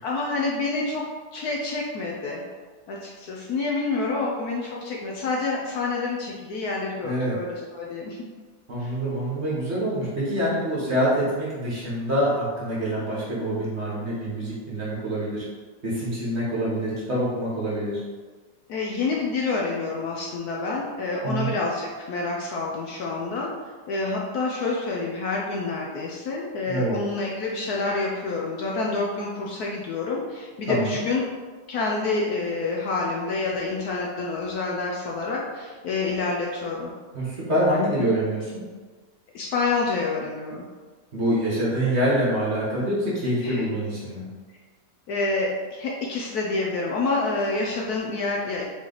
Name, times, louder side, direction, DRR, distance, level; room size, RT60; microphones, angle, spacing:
voice 1, 0.0-2.4 2.9-8.2 8.8-8.9 18.7-23.5 23.9-31.2 31.7-36.9 39.3-40.6 43.4-43.6 45.1-48.6, left 3 dB, 70° left, -2 dB, 1.0 m, -28 dB
voice 2, 7.0-7.4 8.7-15.4 15.8-18.0 21.2-21.5 26.6-27.0 30.7-30.9 37.1-38.6 41.1-44.3, right 1 dB, 45° right, -7 dB, 1.1 m, -25 dB
4.2 x 3.1 x 3.8 m, 1.4 s
omnidirectional pair, 2.0 m